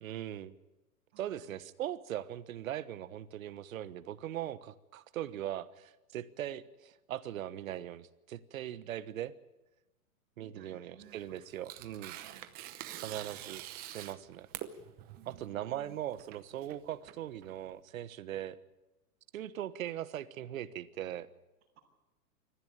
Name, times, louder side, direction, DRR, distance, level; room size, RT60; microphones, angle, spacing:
voice 1, 0.0-0.5 1.2-9.3 10.4-12.2 13.0-13.6 13.9-14.5 15.2-18.6 19.3-21.3, right 11 dB, 60° right, 14 dB, 1.3 m, -40 dB
voice 2, 1.1-1.5 10.4-11.5 12.1-12.6 15.1-16.0, right 8 dB, 45° right, -5 dB, 6.7 m, -58 dB
Tearing, 11.0-17.8, right 12 dB, 20° right, 0.8 m, -46 dB
24.0 x 14.5 x 8.9 m, 1.0 s
hypercardioid pair, 150°, 46 cm